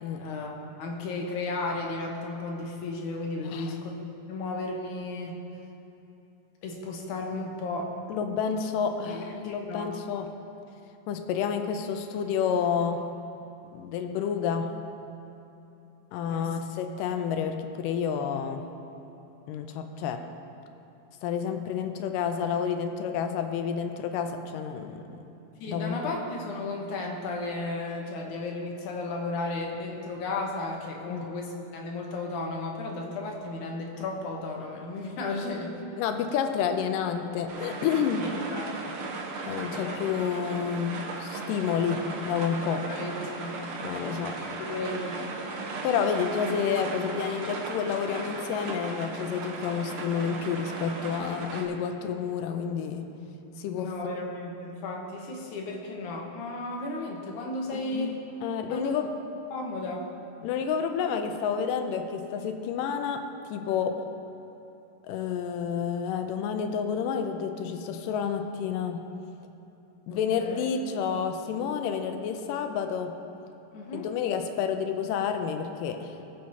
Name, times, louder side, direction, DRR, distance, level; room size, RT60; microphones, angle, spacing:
voice 1, 0.2-4.0 4.2-5.4 6.6-8.0 9.1-9.9 16.3-16.5 25.6-35.7 38.2-39.0 39.7-39.9 42.9-43.6 44.4-45.2 53.8-58.2 58.7-58.9 59.5-60.1 70.1-70.6 73.7-74.1, left 2 dB, 70° left, 0 dB, 2.3 m, -34 dB
voice 2, 8.1-10.3 11.1-13.1 13.7-14.8 16.1-18.7 19.5-20.2 21.2-25.2 25.7-26.0 31.1-31.3 36.0-38.3 39.5-42.9 43.8-44.4 45.8-53.1 53.6-53.9 57.7-58.2 58.4-59.1 60.4-63.3 63.5-64.0 65.1-69.1 70.1-73.2 73.9-76.2, left 7 dB, 90° left, 6 dB, 2.2 m, -30 dB
sound 1, 37.5-51.6, right 3 dB, 75° right, 1.2 m, -36 dB
20.5 x 7.5 x 2.8 m, 2.9 s
omnidirectional pair, 3.8 m